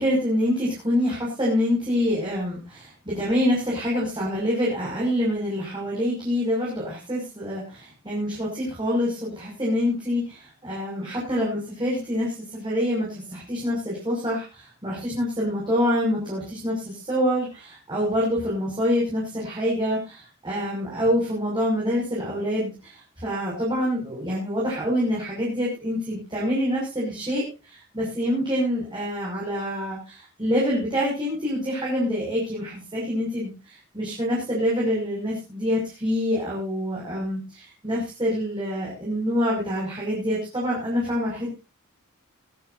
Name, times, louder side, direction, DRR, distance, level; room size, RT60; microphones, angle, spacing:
voice 1, 0.0-41.6, equal, 20° right, -5 dB, 6.3 m, -26 dB
21.0 x 12.0 x 2.7 m, 0.29 s
head